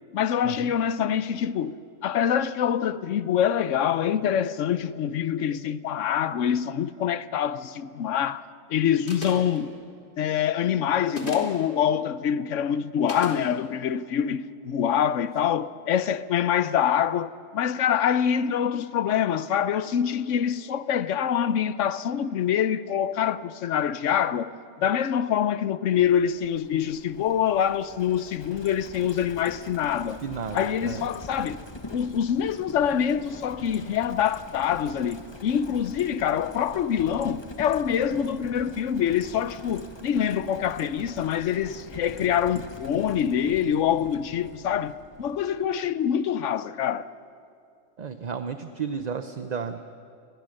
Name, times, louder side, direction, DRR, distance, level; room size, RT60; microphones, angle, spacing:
voice 1, 0.1-1.8 2.0-8.4 8.7-9.7 10.2-24.5 24.8-30.2 30.5-31.6 31.9-44.9 45.2-47.1, left 9 dB, 70° left, 1.1 m, -25 dB
sound 1, 9.1-9.6 11.1-11.6 13.1-13.4, left 2 dB, 40° left, 3.1 m, -34 dB
Livestock farm animals working animals, 26.1-45.8, left 2 dB, 20° left, 1.2 m, -44 dB
voice 2, 30.2-31.0 48.0-49.8, right 6 dB, 40° right, 0.7 m, -33 dB
28.5 x 21.0 x 6.5 m
omnidirectional pair, 1.3 m